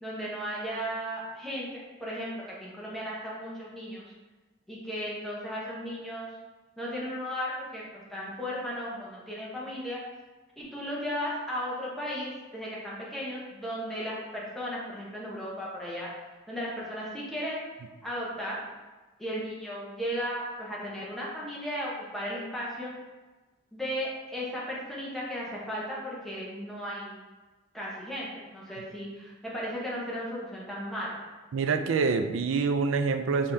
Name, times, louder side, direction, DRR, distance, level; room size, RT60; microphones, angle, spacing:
voice 1, 0.0-4.1 4.7-6.3 6.8-10.0 10.6-16.1 16.5-17.7 18.0-18.6 19.2-22.9 23.7-27.2 27.7-31.3, equal, ahead, -6 dB, 0.9 m, -35 dB
voice 2, 31.5-33.5, right 4 dB, 80° right, 8 dB, 0.4 m, -26 dB
5.3 x 3.4 x 2.7 m, 1.2 s
head